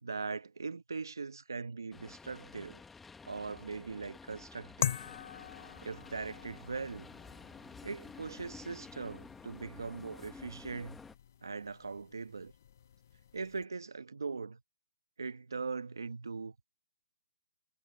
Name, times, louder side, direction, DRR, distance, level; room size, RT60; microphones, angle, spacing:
voice 1, 0.0-2.8 3.3-5.0 5.8-7.1 7.8-11.0 11.4-12.5 13.3-14.6 15.2-16.5, right 4 dB, 90° right, 1.4 m, -40 dB
sound 1, 1.9-11.1, left 4 dB, 5° left, 1.4 m, -52 dB
sound 2, 4.8-13.6, left 9 dB, 50° left, 0.8 m, -44 dB
hypercardioid pair, 155°, 2 cm